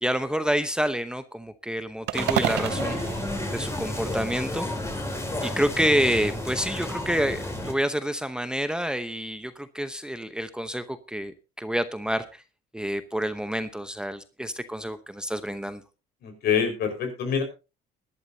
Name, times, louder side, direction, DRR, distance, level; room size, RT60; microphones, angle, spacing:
voice 1, 0.0-3.0 3.5-4.7 5.4-12.4 12.7-15.8, equal, 5° right, 11 dB, 0.8 m, -28 dB
sound 1, 2.1-7.7, left 1 dB, 15° left, 3.7 m, -31 dB
sound 2, 2.1-4.4, right 16 dB, 85° right, 0.7 m, -31 dB
voice 2, 16.2-17.4, left 7 dB, 70° left, 5 dB, 5.0 m, -25 dB
20.0 x 11.5 x 2.8 m, 0.30 s
cardioid pair, 110°, 17 cm